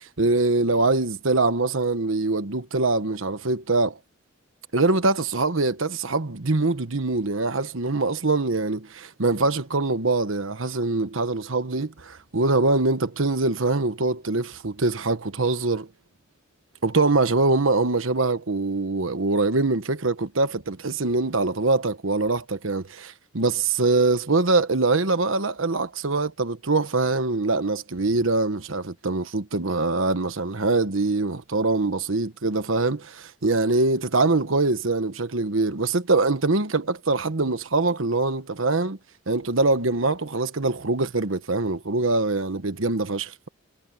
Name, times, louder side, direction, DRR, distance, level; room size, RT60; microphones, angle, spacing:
voice 1, 0.2-4.0 4.7-15.9 16.8-39.0 39.3-43.5, right 3 dB, 85° right, 1.3 m, -23 dB
head